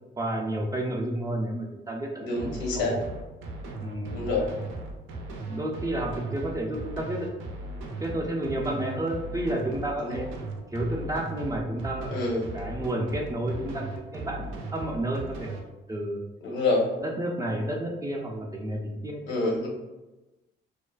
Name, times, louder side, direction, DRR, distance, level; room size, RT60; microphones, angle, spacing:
voice 1, 0.2-3.0 3.8-4.5 5.5-7.3 8.0-10.3 10.7-12.2 12.5-13.8 14.1-15.6 15.9-16.2 17.0-19.6, right 1 dB, 15° right, -1 dB, 0.4 m, -31 dB
voice 2, 2.2-2.9 4.1-4.5 10.0-10.3 12.1-12.5 16.4-16.9 19.3-19.7, left 2 dB, 75° left, -2 dB, 0.7 m, -27 dB
sound 1, 2.4-15.6, right 2 dB, 80° right, 0.5 m, -37 dB
2.4 x 2.3 x 2.3 m, 1.1 s
cardioid pair, 90°, 20 cm